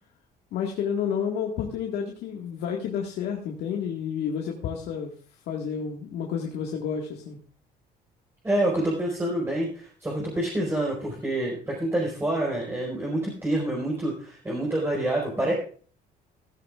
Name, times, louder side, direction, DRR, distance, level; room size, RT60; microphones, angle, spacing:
voice 1, 0.5-5.1 5.5-7.4, left 7 dB, 80° left, 0 dB, 1.8 m, -30 dB
voice 2, 8.4-15.5, right 1 dB, 15° right, -4 dB, 4.6 m, -27 dB
15.5 x 13.0 x 2.4 m, 0.42 s
cardioid pair, 110°, 17 cm